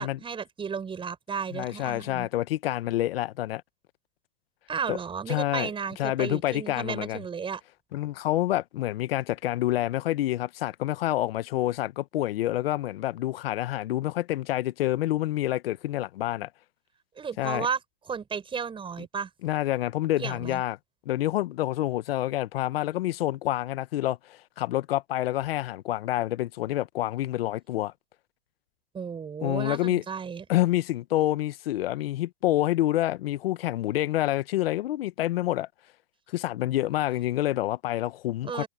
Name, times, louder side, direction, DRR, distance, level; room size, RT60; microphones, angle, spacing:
voice 1, 0.0-2.3 4.7-7.6 17.2-17.8 18.1-19.3 20.2-20.6 28.9-30.4 38.4-38.7, right 6 dB, 15° right, 6.8 m, -33 dB
voice 2, 1.5-3.6 4.9-5.0 5.3-5.7 6.0-7.2 7.9-16.5 17.4-17.7 19.4-20.8 21.1-27.9 29.4-30.0 30.5-35.7 36.3-38.6, left 14 dB, 65° left, 1.1 m, -27 dB
hypercardioid pair, 130°, 32 cm